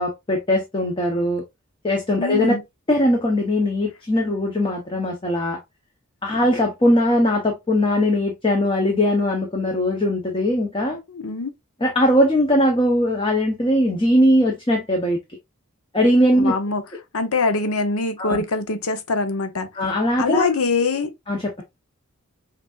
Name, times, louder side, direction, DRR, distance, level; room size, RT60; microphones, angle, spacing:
voice 1, 0.0-1.4 1.8-2.6 2.9-5.6 6.2-11.0 11.8-15.2 15.9-16.6 18.2-18.4 19.7-20.5 21.3-21.6, left 1 dB, 25° left, 0.8 m, -20 dB
voice 2, 2.2-2.6 11.1-11.5 16.3-16.8 17.1-19.7 20.2-21.1, left 3 dB, 75° left, 0.8 m, -23 dB
5.9 x 2.7 x 2.4 m
head